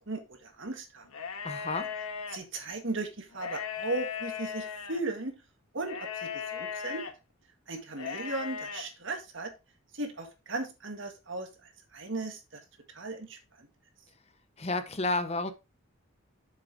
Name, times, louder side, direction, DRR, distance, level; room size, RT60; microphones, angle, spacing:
voice 1, 0.1-1.1 2.3-5.3 5.7-7.0 7.7-9.5 9.9-11.5 11.9-12.4 12.9-13.4, right 2 dB, 60° right, 1.9 m, -36 dB
sound 1, 1.1-2.4 3.3-5.0 5.9-7.1 7.9-8.8, left 7 dB, 90° left, 1.3 m, -37 dB
voice 2, 1.4-1.9 14.6-15.5, left 2 dB, 30° left, 0.7 m, -31 dB
7.6 x 7.0 x 3.5 m
head